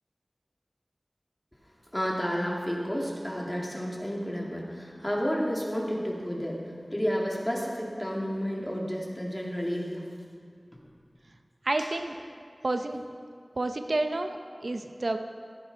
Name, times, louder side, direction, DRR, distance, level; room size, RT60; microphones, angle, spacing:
voice 1, 1.9-10.1 11.8-11.9, equal, 10° left, -2 dB, 2.2 m, -31 dB
voice 2, 11.6-12.2 12.6-13.0 13.6-14.4 14.6-15.2, right 2 dB, 70° right, 6 dB, 0.6 m, -29 dB
15.0 x 9.5 x 4.0 m, 2.2 s
wide cardioid pair, 60°, 0 cm